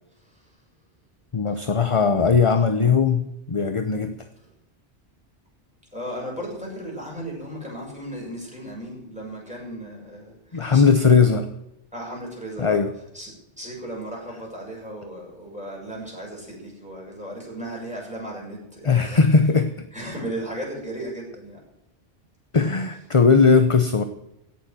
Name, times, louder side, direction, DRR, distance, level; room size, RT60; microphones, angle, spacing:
voice 1, 1.3-4.3 10.5-11.5 12.6-12.9 18.8-19.9 22.5-24.0, left 5 dB, 30° left, 8 dB, 0.9 m, -19 dB
voice 2, 5.9-11.1 11.9-12.8 13.1-13.3 13.6-19.2 19.9-21.6, right 1 dB, 5° right, -3 dB, 6.7 m, -35 dB
17.0 x 7.5 x 7.7 m, 0.87 s
omnidirectional pair, 1.1 m